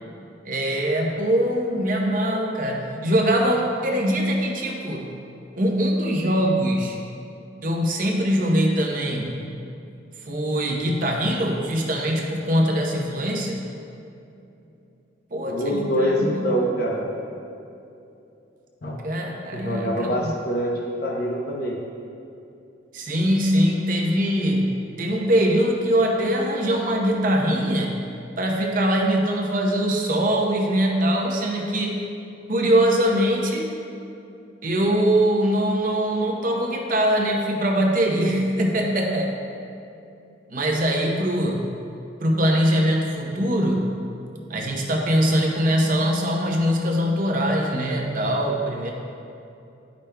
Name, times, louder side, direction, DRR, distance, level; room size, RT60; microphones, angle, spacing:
voice 1, 0.4-5.1 5.5-7.0 7.6-9.4 10.2-13.6 15.3-16.4 19.0-20.3 22.9-28.0 28.4-32.0 32.5-33.7 34.6-39.3 40.5-41.7 42.2-44.0 44.5-48.9, equal, 45° right, 0 dB, 0.8 m, -22 dB
voice 2, 15.5-17.0 18.8-19.0 19.5-21.8, equal, 50° left, -2 dB, 0.8 m, -25 dB
10.5 x 5.1 x 2.2 m, 2.7 s
head